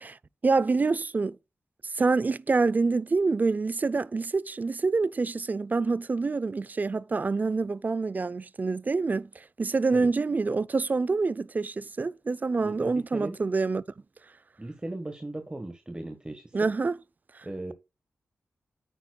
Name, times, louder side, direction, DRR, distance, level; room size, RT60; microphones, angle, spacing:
voice 1, 0.4-1.4 1.9-13.8 16.5-17.0, right 4 dB, 35° right, 0.5 m, -26 dB
voice 2, 12.6-13.4 14.6-16.7 17.4-17.7, right 2 dB, 20° right, 1.4 m, -38 dB
9.3 x 9.0 x 2.3 m
cardioid pair, 80°, 5 cm